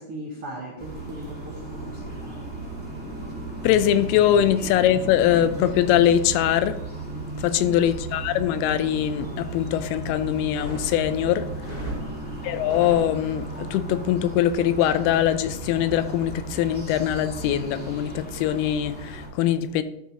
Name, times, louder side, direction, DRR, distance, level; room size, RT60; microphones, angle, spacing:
voice 1, 0.0-2.5 7.4-7.7 11.8-12.1, right 1 dB, 90° right, 1.2 m, -38 dB
sound 1, 0.8-19.3, right 2 dB, 5° left, 1.2 m, -35 dB
voice 2, 3.6-6.8 7.4-11.5 12.4-19.8, left 11 dB, 85° left, 2.5 m, -22 dB
sound 2, 10.4-13.6, left 1 dB, 15° right, 3.1 m, -38 dB
12.5 x 6.1 x 2.8 m
omnidirectional pair, 4.4 m